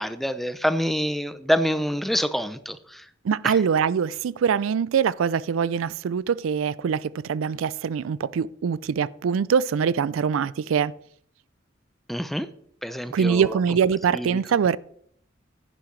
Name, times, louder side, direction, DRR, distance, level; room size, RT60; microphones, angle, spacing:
voice 1, 0.0-3.0 3.4-3.5 12.1-12.5 12.8-13.6 14.1-14.4, equal, ahead, 0.5 m, -26 dB
voice 2, 3.2-10.9 13.1-14.8, right 7 dB, 85° right, 0.4 m, -23 dB
10.5 x 10.0 x 3.2 m
head